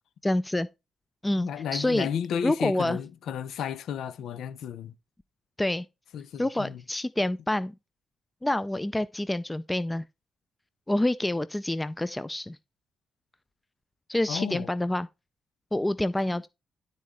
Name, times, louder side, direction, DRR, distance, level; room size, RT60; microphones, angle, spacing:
voice 1, 0.2-0.7 1.2-2.1 2.4-3.0 5.6-5.9 6.4-7.7 8.4-10.0 10.9-12.6 14.1-15.1 15.7-16.5, left 1 dB, 10° left, 0.4 m, -27 dB
voice 2, 1.4-4.9 6.1-6.8 14.3-14.7 16.3-16.4, left 8 dB, 80° left, 0.8 m, -33 dB
12.5 x 4.2 x 3.8 m
cardioid pair, 105°, 0 cm